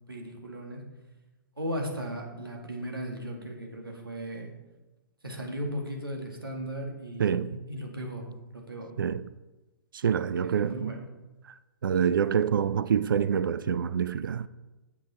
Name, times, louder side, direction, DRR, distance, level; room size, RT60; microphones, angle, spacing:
voice 1, 0.1-0.8 1.6-4.5 5.2-8.9 10.3-11.1, equal, 85° right, 2.2 m, -37 dB
voice 2, 7.2-7.5 9.0-9.3 9.9-10.9 11.4-11.6 11.8-14.5, right 7 dB, 70° right, 0.4 m, -26 dB
8.7 x 8.3 x 4.2 m
figure-of-eight pair, 115°, 12 cm